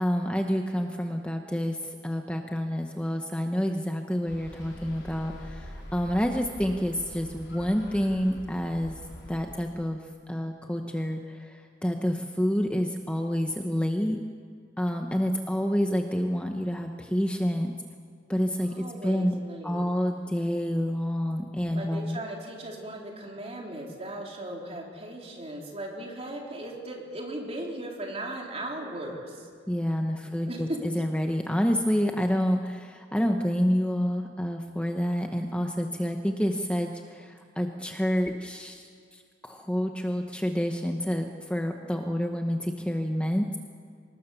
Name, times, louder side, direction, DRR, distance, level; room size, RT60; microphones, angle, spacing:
voice 1, 0.0-8.9 9.3-10.0 10.3-14.2 14.8-17.7 18.3-19.3 19.6-22.2 29.7-43.6, equal, 5° left, 3 dB, 0.9 m, -28 dB
sound 1, 4.3-9.5, equal, 70° left, 4.7 m, -44 dB
voice 2, 18.6-19.9 21.7-29.5 30.3-30.8, right 1 dB, 35° right, -1 dB, 3.7 m, -37 dB
25.5 x 20.0 x 7.1 m, 2.2 s
head